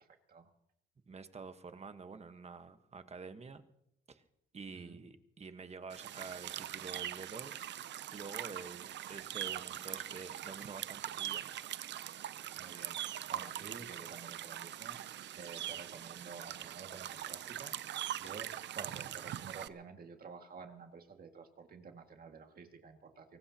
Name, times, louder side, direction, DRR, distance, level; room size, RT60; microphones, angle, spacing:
voice 1, 1.1-3.6 4.1-4.2 4.5-7.6 8.1-11.5, right 4 dB, 30° right, 9 dB, 1.3 m, -48 dB
sound 1, 5.9-19.7, right 11 dB, 65° right, 0.6 m, -42 dB
voice 2, 12.6-23.4, right 5 dB, 50° right, 4 dB, 2.1 m, -51 dB
24.0 x 18.5 x 2.9 m, 0.78 s
cardioid pair, 90°, 20 cm